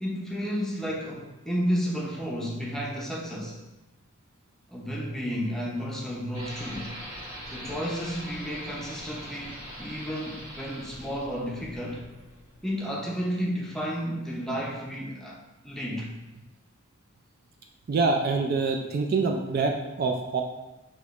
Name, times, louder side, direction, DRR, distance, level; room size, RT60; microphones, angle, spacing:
voice 1, 0.0-3.6 4.7-6.9 7.5-12.0 12.6-16.1, equal, ahead, -4 dB, 0.6 m, -32 dB
Toilet Flush Tank Fill, 6.3-13.0, equal, 20° right, 1.2 m, -42 dB
voice 2, 17.9-20.4, right 4 dB, 45° right, 3 dB, 0.3 m, -25 dB
6.0 x 2.9 x 2.4 m, 0.99 s
head